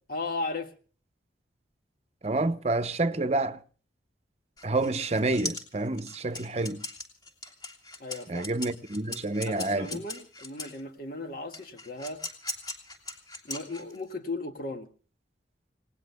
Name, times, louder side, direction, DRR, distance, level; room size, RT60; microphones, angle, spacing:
voice 1, 0.1-0.7 8.0-8.5 9.4-12.2 13.4-14.9, left 2 dB, 50° left, 1.7 m, -36 dB
voice 2, 2.2-3.6 4.6-6.8 8.3-10.0, right 2 dB, 35° right, 0.9 m, -28 dB
sound 1, 4.6-10.8 11.5-14.1, left 2 dB, 20° left, 3.0 m, -39 dB
29.5 x 18.5 x 2.2 m
head